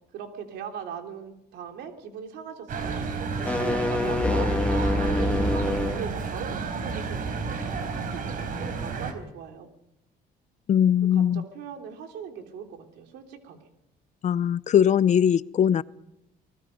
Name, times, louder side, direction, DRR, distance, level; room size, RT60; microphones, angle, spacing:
voice 1, 0.1-4.5 5.1-9.7 11.1-13.7, right 7 dB, 85° right, 4 dB, 3.2 m, -40 dB
sound 1, 2.7-9.1, right 4 dB, 55° right, 3.9 m, -31 dB
sound 2, 3.3-6.1, left 1 dB, 5° left, 1.4 m, -25 dB
voice 2, 10.7-11.4 14.2-15.8, left 9 dB, 45° left, 18 dB, 0.6 m, -21 dB
25.0 x 20.0 x 5.4 m, 0.86 s
cardioid pair, 110°, 17 cm